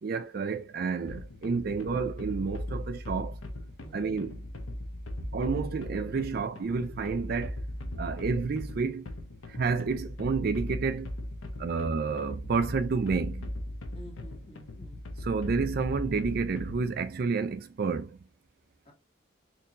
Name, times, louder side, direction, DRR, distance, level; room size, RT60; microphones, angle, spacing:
voice 1, 0.0-3.4 3.9-4.4 5.3-7.6 8.0-9.1 9.5-11.1 11.6-13.5 15.2-18.2, right 4 dB, 50° right, 0.4 m, -30 dB
sound 1, 1.1-17.0, left 1 dB, 85° left, 0.7 m, -38 dB
voice 2, 13.9-15.0 18.8-18.9, right 1 dB, 30° left, 1.3 m, -50 dB
4.4 x 2.7 x 2.9 m
head